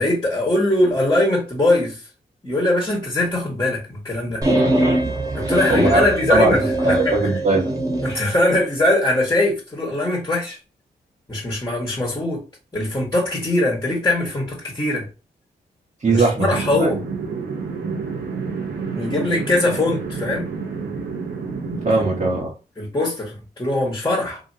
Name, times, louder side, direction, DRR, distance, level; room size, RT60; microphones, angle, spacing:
voice 1, 0.0-2.0 2.4-4.4 5.3-7.2 8.0-10.6 11.3-12.4 12.7-15.0 16.1-17.0 18.9-20.5 22.8-24.4, left 1 dB, 20° left, -3 dB, 1.5 m, -21 dB
sound 1, 4.4-8.2, right 1 dB, 20° right, 1.3 m, -22 dB
voice 2, 5.7-7.7 16.0-16.5 16.8-16.9 21.8-22.5, right 2 dB, 45° right, -3 dB, 1.0 m, -20 dB
sound 2, 16.5-22.4, right 5 dB, 85° right, 0.9 m, -29 dB
2.8 x 2.8 x 2.7 m, 0.31 s
cardioid pair, 50°, 17 cm